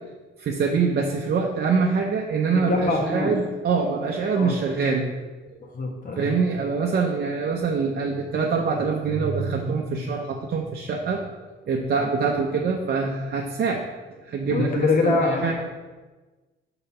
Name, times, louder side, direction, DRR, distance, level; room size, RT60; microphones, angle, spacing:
voice 1, 0.4-5.1 6.2-11.3 11.7-13.8 14.3-15.5, right 5 dB, 55° right, 0 dB, 0.7 m, -24 dB
voice 2, 2.5-3.3 4.3-4.6 5.6-6.3 14.5-15.5, left 3 dB, 45° left, 1 dB, 1.4 m, -24 dB
5.7 x 3.9 x 5.5 m, 1.3 s
cardioid pair, 90°, 20 cm